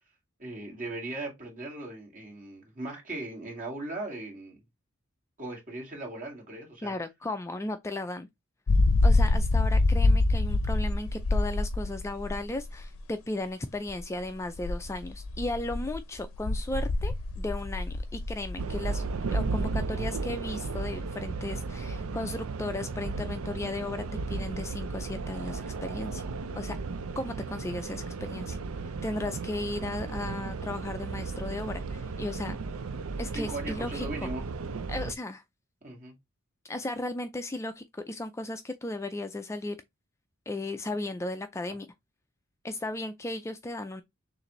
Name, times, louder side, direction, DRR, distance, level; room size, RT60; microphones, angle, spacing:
voice 1, 0.4-4.6 5.4-6.9 33.3-34.5 35.8-36.1, right 2 dB, 40° right, 2.1 m, -38 dB
voice 2, 6.8-8.3 9.0-19.0 19.3-26.2 26.6-26.8 27.2-28.6 29.0-32.6 33.2-34.3 34.9-35.4 36.7-39.8 40.5-41.9 42.6-44.0, left 2 dB, 15° left, 0.3 m, -35 dB
sound 1, 8.7-13.0 13.9-14.0 14.6-18.9, left 2 dB, 85° left, 0.6 m, -26 dB
sound 2, 18.6-35.1, right 3 dB, 85° right, 0.5 m, -34 dB
6.5 x 2.6 x 3.0 m
head